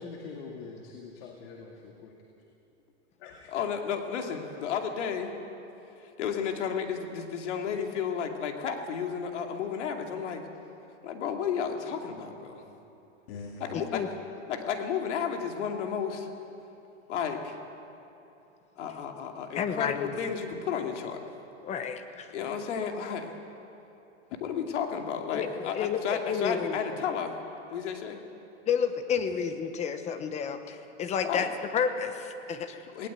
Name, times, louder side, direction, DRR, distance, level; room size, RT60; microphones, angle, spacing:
voice 1, 0.0-2.1 3.2-3.5 12.6-12.8 13.3-13.6 29.2-29.3, left 4 dB, 55° left, 1 dB, 2.2 m, -44 dB
voice 2, 3.5-5.3 6.2-10.4 11.0-12.6 13.6-14.1 14.5-16.3 17.1-17.6 18.8-21.2 22.3-23.3 24.4-27.4 27.7-28.2 31.2-31.5 32.9-33.1, left 7 dB, 70° left, 3 dB, 2.7 m, -32 dB
voice 3, 13.7-14.1 19.5-20.1 21.6-22.3 25.3-27.0 28.7-32.8, left 7 dB, 20° left, 9 dB, 0.9 m, -31 dB
19.0 x 18.0 x 8.3 m, 2.9 s
supercardioid pair, 150°, 37 cm